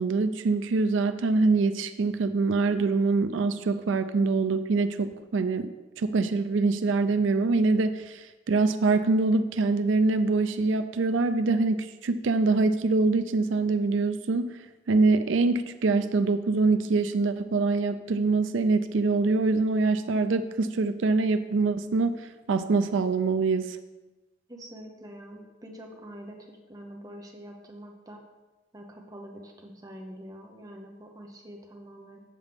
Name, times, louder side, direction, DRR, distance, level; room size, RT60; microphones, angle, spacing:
voice 1, 0.0-5.7 6.0-14.6 14.9-23.8, right 3 dB, 90° right, 9 dB, 0.4 m, -24 dB
voice 2, 24.5-28.2 28.7-32.2, equal, 20° right, 1 dB, 0.8 m, -45 dB
8.1 x 7.4 x 3.5 m, 1.1 s
head